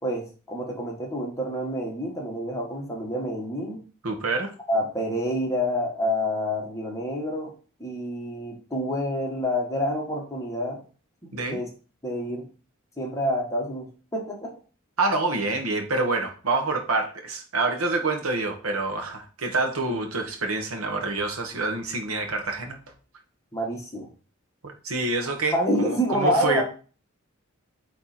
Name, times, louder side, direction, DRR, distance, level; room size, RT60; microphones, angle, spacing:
voice 1, 0.0-3.8 4.7-7.5 7.8-10.8 11.4-11.7 12.0-12.5 13.0-14.5 19.9-20.0 23.5-24.1 25.5-26.6, equal, 15° left, -1 dB, 1.6 m, -28 dB
voice 2, 4.0-4.5 11.3-11.6 15.0-22.8 24.6-26.6, right 3 dB, 80° right, 4 dB, 1.4 m, -27 dB
8.9 x 3.4 x 4.3 m, 0.37 s
head